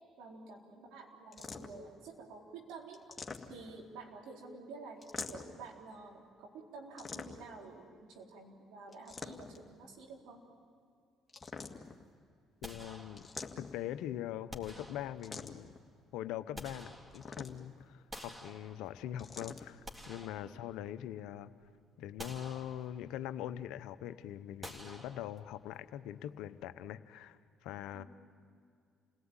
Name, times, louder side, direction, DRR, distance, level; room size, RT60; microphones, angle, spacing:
voice 1, 0.2-3.0 3.5-10.4 20.4-20.6 27.9-28.0, right 4 dB, 75° right, 0 dB, 4.0 m, -50 dB
sound 1, 1.3-1.9 2.9-3.8 5.0-5.6 7.0-7.6 8.9-9.7 11.3-12.1 13.2-13.9 15.2-15.8 17.1-17.8 19.2-19.7, left 4 dB, 25° left, 2.1 m, -45 dB
voice 2, 12.6-13.2 13.6-15.7 16.1-21.5 22.0-28.0, left 11 dB, 75° left, 13 dB, 0.8 m, -42 dB
sound 2, 12.6-13.7 14.5-15.6 16.2-17.6 18.1-19.2 19.6-21.1 21.5-21.6 22.2-23.3 24.6-25.7, equal, 15° right, 3.5 m, -50 dB
29.0 x 18.0 x 9.0 m, 2.3 s
hypercardioid pair, 60°, 0 cm